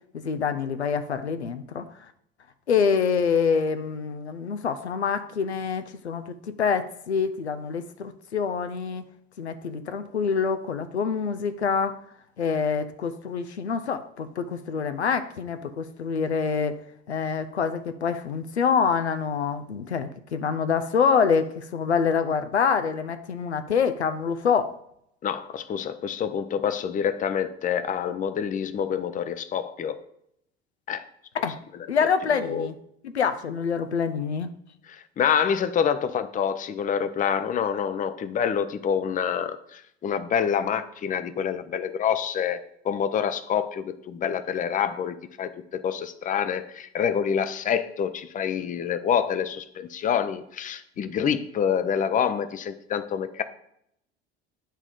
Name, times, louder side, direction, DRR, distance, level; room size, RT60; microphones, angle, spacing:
voice 1, 0.1-1.9 2.7-9.0 9.4-12.0 12.4-16.7 17.1-24.7 31.4-31.6 31.9-32.7 33.0-34.5, left 6 dB, 85° left, 9 dB, 0.5 m, -26 dB
voice 2, 25.2-30.0 30.9-31.0 32.3-32.7 34.9-42.6 42.8-53.4, left 8 dB, 25° left, 11 dB, 0.6 m, -27 dB
10.0 x 3.6 x 5.0 m, 0.73 s
figure-of-eight pair, 65°, 32 cm